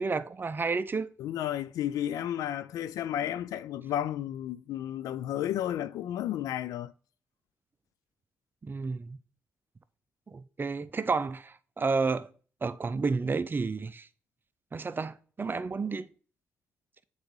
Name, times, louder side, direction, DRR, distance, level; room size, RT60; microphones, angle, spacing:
voice 1, 0.0-1.1 8.6-9.2 10.3-12.3 12.6-14.1 14.7-16.1, right 4 dB, 35° right, 0.5 m, -31 dB
voice 2, 1.2-6.9, left 11 dB, 75° left, 0.4 m, -32 dB
7.9 x 4.0 x 3.1 m
hypercardioid pair, 50°, 6 cm